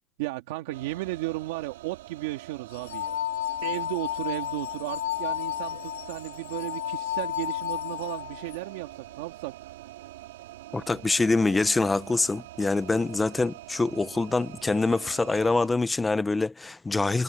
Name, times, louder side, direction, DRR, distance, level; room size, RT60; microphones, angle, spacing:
voice 1, 0.2-3.2 3.6-9.5, right 19 dB, 45° right, 2.2 m, -34 dB
sound 1, 0.7-15.7, right 16 dB, 65° right, 2.4 m, -45 dB
sound 2, 2.7-8.6, left 14 dB, 75° left, 4.4 m, -32 dB
voice 2, 10.7-17.2, left 3 dB, 5° left, 0.5 m, -25 dB
supercardioid pair, 180°, 0 cm